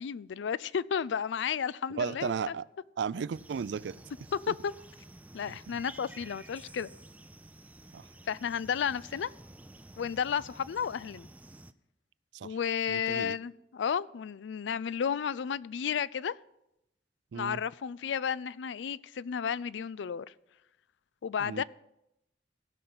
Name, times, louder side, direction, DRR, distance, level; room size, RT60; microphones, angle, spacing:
voice 1, 0.0-2.5 4.3-4.7 5.3-6.9 8.3-9.3 10.0-11.3 12.4-16.3 17.3-20.3 21.2-21.6, left 7 dB, 85° left, 0.4 m, -32 dB
voice 2, 1.9-2.6 3.0-4.0 4.5-4.6 5.7-5.8 7.9-8.1 12.3-12.6 12.9-13.4 17.3-17.6 21.4-21.6, right 6 dB, 75° right, 0.4 m, -35 dB
sound 1, 3.3-11.7, right 2 dB, 10° right, 0.4 m, -51 dB
16.5 x 5.8 x 7.8 m
head